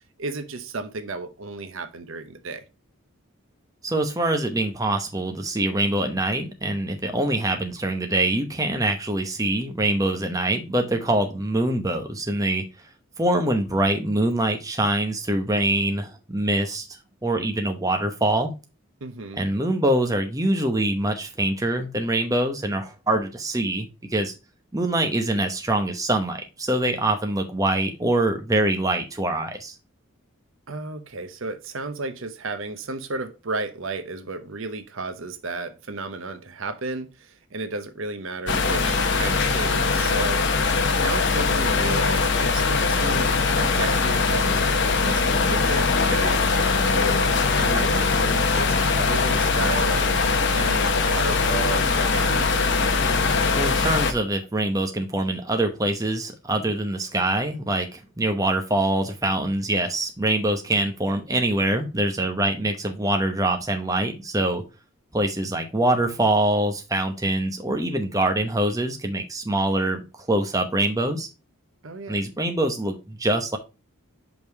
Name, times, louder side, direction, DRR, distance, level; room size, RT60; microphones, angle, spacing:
voice 1, 0.2-2.6 19.0-19.4 30.7-40.4 41.0-50.1 50.5-52.6 71.8-72.2, right 3 dB, 70° right, 0.8 m, -33 dB
voice 2, 3.8-12.6 13.2-16.9 17.2-18.5 19.4-24.3 24.7-29.7 53.5-64.6 65.1-71.3 72.1-73.6, right 1 dB, 15° right, 0.8 m, -24 dB
sound 1, 38.5-54.1, left 4 dB, 55° left, 0.9 m, -21 dB
5.4 x 5.0 x 4.5 m
head